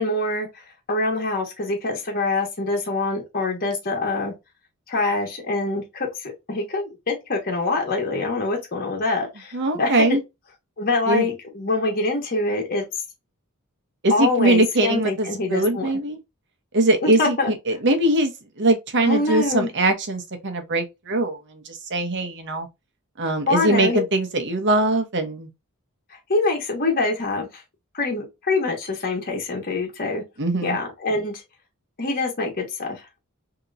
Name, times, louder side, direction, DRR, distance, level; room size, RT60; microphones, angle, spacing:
voice 1, 0.0-4.3 4.9-10.0 10.8-12.8 14.1-15.9 17.0-17.5 19.1-19.7 23.5-24.0 26.1-27.6 27.9-30.2 30.6-31.4 32.0-33.2, left 3 dB, 40° left, 1.2 m, -25 dB
voice 2, 9.5-10.2 11.1-11.3 14.0-16.2 16.7-18.3 18.6-22.7 23.2-25.5 30.4-30.8, right 2 dB, 55° right, 1.0 m, -22 dB
3.6 x 2.9 x 2.6 m
head